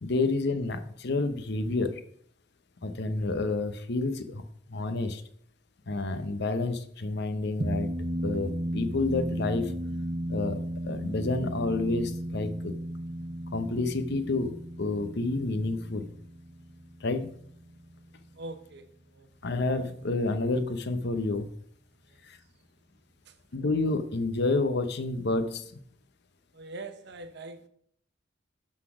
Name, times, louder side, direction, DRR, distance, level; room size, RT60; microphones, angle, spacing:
voice 1, 0.0-2.0 2.8-4.4 4.7-5.2 5.9-7.9 8.2-9.7 10.3-12.7 13.5-16.1 17.0-17.3 19.4-21.5 22.2-22.4 23.5-25.8, left 3 dB, 55° left, 0.8 m, -29 dB
sound 1, 7.6-18.3, right 1 dB, 30° right, 0.6 m, -35 dB
voice 2, 18.3-19.3 23.3-23.4 26.5-27.7, right 2 dB, 55° right, 0.8 m, -43 dB
12.0 x 4.0 x 4.9 m
head